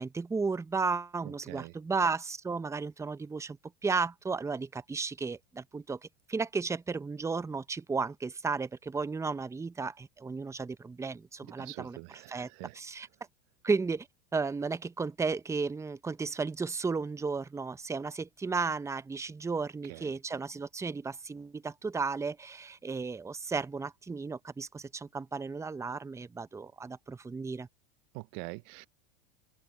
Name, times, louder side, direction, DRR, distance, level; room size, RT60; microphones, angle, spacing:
voice 1, 0.0-3.6 3.8-13.1 13.6-14.1 14.3-27.7, right 4 dB, 10° right, 0.7 m, -34 dB
voice 2, 11.6-12.8 19.9-20.1 28.1-28.9, right 28 dB, 55° right, 0.5 m, -44 dB
open air
hypercardioid pair, 105°, 30 cm